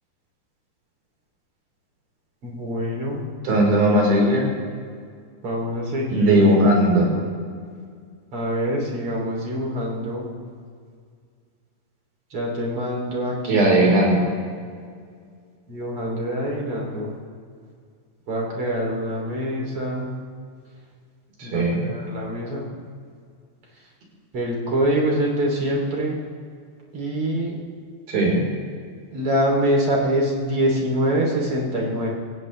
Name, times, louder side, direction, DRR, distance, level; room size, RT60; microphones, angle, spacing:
voice 1, 2.4-3.2 5.4-6.4 8.3-10.3 12.3-13.7 15.7-17.1 18.3-20.1 21.4-22.7 24.3-26.2 26.9-27.6 29.1-32.1, equal, 35° right, -2 dB, 3.7 m, -25 dB
voice 2, 3.4-4.5 6.1-7.1 13.5-14.3 21.4-21.8 28.1-28.4, right 1 dB, 60° right, -2 dB, 6.2 m, -18 dB
27.0 x 16.0 x 3.4 m, 2.1 s
omnidirectional pair, 4.8 m